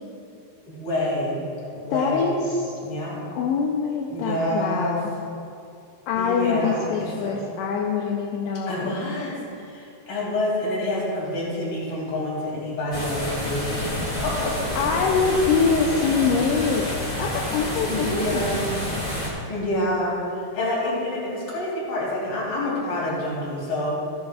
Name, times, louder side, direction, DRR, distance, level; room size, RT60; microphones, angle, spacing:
voice 1, 0.7-1.4 1.7-2.4 2.8-3.2 4.1-5.0 6.1-7.4 8.7-15.0 17.8-19.0 19.5-23.9, left 1 dB, 35° left, -5 dB, 3.0 m, -28 dB
voice 2, 1.9-2.8 3.4-5.1 6.1-9.0 14.7-18.4, left 5 dB, 80° left, -1 dB, 2.6 m, -24 dB
sound 1, 12.9-19.3, left 1 dB, 60° left, 0.5 m, -29 dB
15.5 x 11.5 x 2.5 m, 2.5 s
omnidirectional pair, 5.2 m